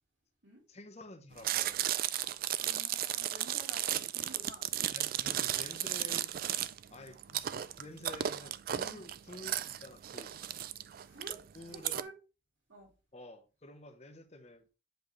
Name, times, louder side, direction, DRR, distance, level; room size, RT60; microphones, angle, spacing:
voice 1, 0.7-1.8 4.9-6.3 6.9-10.4 11.5-12.1 13.1-14.7, left 2 dB, 35° left, 0.9 m, -50 dB
Chewing mastication, 1.4-12.0, right 12 dB, 45° right, 0.3 m, -34 dB
voice 2, 2.6-4.7 8.9-9.0 11.0-11.4 11.7-12.1 12.7-12.9, right 2 dB, 70° right, 3.0 m, -51 dB
7.8 x 4.8 x 3.1 m
head